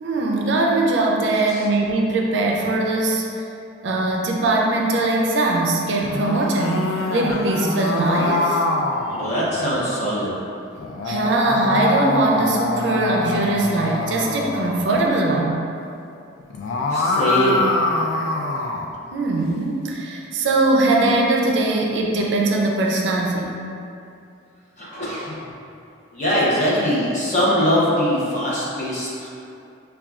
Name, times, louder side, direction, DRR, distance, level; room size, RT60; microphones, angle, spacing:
voice 1, 0.0-3.3 3.8-8.6 11.1-15.7 19.1-23.6, right 2 dB, 60° right, -1 dB, 0.4 m, -21 dB
sound 1, 5.9-9.8 10.8-15.0 16.4-18.9, left 2 dB, 75° left, 0.3 m, -24 dB
voice 2, 9.0-10.3 16.9-17.7 24.8-25.4 26.1-29.3, equal, 35° left, -7 dB, 0.8 m, -22 dB
5.5 x 2.3 x 2.3 m, 2.6 s
head